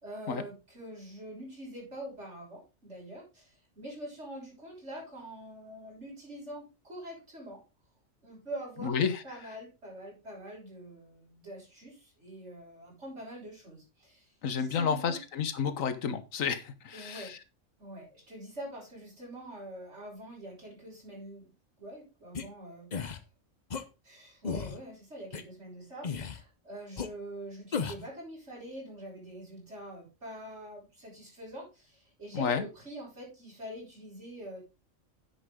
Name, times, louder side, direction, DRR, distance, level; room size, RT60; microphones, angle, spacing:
voice 1, 0.0-7.6 8.2-9.0 9.2-15.2 16.9-17.3 17.8-21.5 21.8-23.2 24.0-34.6, right 1 dB, 60° right, 6.7 m, -45 dB
voice 2, 8.8-9.2 14.4-17.4 32.3-32.7, left 6 dB, 80° left, 1.5 m, -31 dB
sound 1, 22.3-22.4 22.9-23.2 23.7-23.8 24.4-24.8 25.3-25.4 26.0-26.4 27.0-27.1 27.7-28.1, left 6 dB, 40° left, 0.8 m, -34 dB
9.9 x 7.9 x 3.7 m
omnidirectional pair, 1.4 m